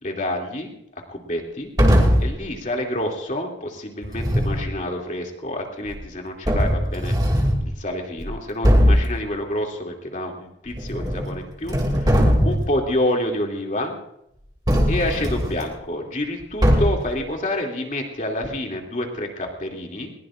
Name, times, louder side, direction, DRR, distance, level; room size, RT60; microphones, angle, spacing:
voice 1, 0.0-0.7 1.1-1.7 2.2-7.2 7.6-14.0 14.9-20.1, left 1 dB, 40° left, 1 dB, 2.7 m, -28 dB
sound 1, 1.8-2.4 4.0-4.7 5.9-6.0 6.4-7.7 8.2-8.3 8.6-9.1 10.7-11.3 11.6-12.7 14.7-15.6 16.6-17.1, equal, 20° right, 2.5 m, -19 dB
21.0 x 20.5 x 2.5 m, 0.79 s
head